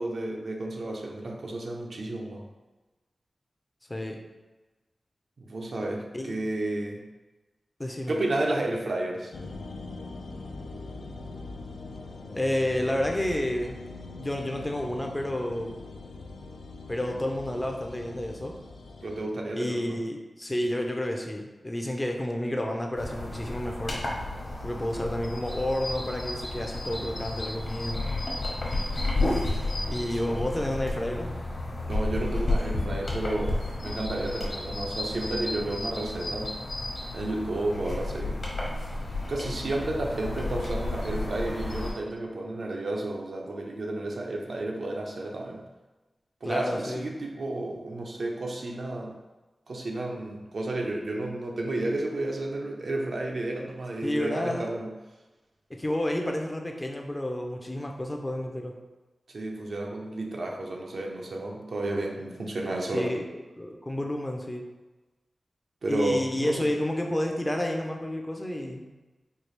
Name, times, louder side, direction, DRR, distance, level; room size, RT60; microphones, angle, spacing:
voice 1, 0.0-2.4 5.4-7.0 8.1-9.3 19.0-20.0 30.0-30.5 31.8-36.5 37.1-38.4 38.9-39.0 39.3-45.6 46.4-49.1 49.7-54.9 59.3-63.1 65.8-66.7, right 2 dB, 70° right, 0 dB, 0.6 m, -32 dB
voice 2, 3.9-4.2 6.1-6.5 7.8-8.2 12.3-13.8 14.1-15.8 16.9-18.6 19.5-24.0 24.6-28.0 29.9-31.3 46.4-47.1 54.0-54.7 55.7-58.8 62.9-64.7 65.9-68.8, left 1 dB, 20° left, 2 dB, 0.4 m, -30 dB
sound 1, 9.3-19.3, left 3 dB, 85° left, 0.3 m, -42 dB
sound 2, 23.0-41.9, left 2 dB, 60° left, 1.0 m, -32 dB
4.4 x 2.3 x 3.2 m, 1.2 s
wide cardioid pair, 115°, 0 cm